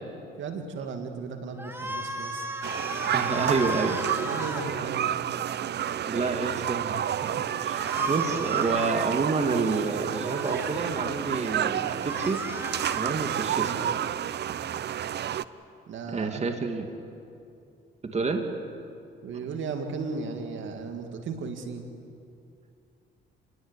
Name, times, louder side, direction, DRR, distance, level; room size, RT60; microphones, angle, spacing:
voice 1, 0.4-2.5 4.2-5.2 8.5-8.6 13.6-13.8 15.9-16.4 19.2-21.9, right 4 dB, 75° right, 5 dB, 2.5 m, -36 dB
sound 1, 1.6-4.6 7.8-9.0 10.1-10.7 11.8-13.1, equal, 10° right, 3.1 m, -35 dB
sound 2, 2.6-15.4, right 10 dB, 60° right, 0.7 m, -30 dB
voice 2, 3.1-4.0 6.0-12.4 12.9-13.7 16.1-16.9 18.0-18.5, right 4 dB, 35° right, 5 dB, 2.6 m, -29 dB
28.5 x 21.5 x 8.4 m, 2.6 s
cardioid pair, 90°, 20 cm